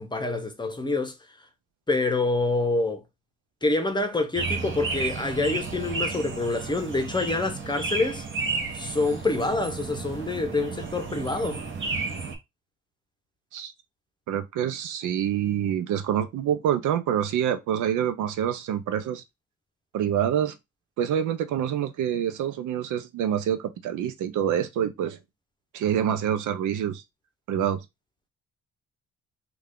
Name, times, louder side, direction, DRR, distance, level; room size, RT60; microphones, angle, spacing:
voice 1, 0.0-1.5 1.9-3.0 3.6-8.3 8.7-11.7, left 2 dB, 15° left, 0.7 m, -27 dB
sound 1, 4.3-12.3, right 4 dB, 40° right, 1.0 m, -32 dB
voice 2, 14.3-19.2 19.9-20.6 21.0-25.2 25.7-27.0 27.5-27.8, right 9 dB, 80° right, 0.6 m, -26 dB
3.3 x 2.4 x 3.6 m
cardioid pair, 90°, 30 cm